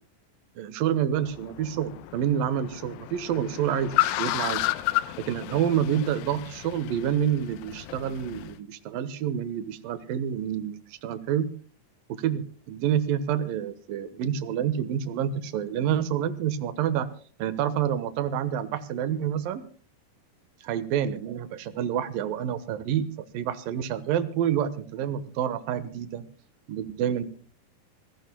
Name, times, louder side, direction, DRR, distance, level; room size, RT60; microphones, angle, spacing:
voice 1, 0.6-4.6 5.3-11.5 12.1-17.1 17.4-19.6 20.7-23.1 23.3-26.2 26.7-27.2, right 9 dB, 80° right, 12 dB, 2.9 m, -28 dB
Car, 1.2-8.5, left 16 dB, 85° left, 2.6 m, -32 dB
25.0 x 17.5 x 2.2 m, 0.41 s
omnidirectional pair, 4.0 m